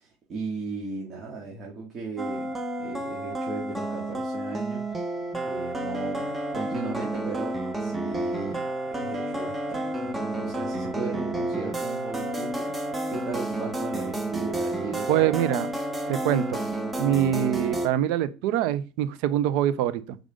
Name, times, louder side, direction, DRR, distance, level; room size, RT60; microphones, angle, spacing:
voice 1, 0.0-4.9 5.4-12.7 13.1-15.2, right 4 dB, 40° right, -2 dB, 2.5 m, -37 dB
sound 1, 2.2-17.9, right 1 dB, 15° right, 1.4 m, -30 dB
voice 2, 15.1-15.7 16.1-16.6 17.0-20.2, right 11 dB, 70° right, 15 dB, 0.7 m, -24 dB
6.4 x 5.0 x 3.8 m, 0.31 s
hypercardioid pair, 90°, 0 cm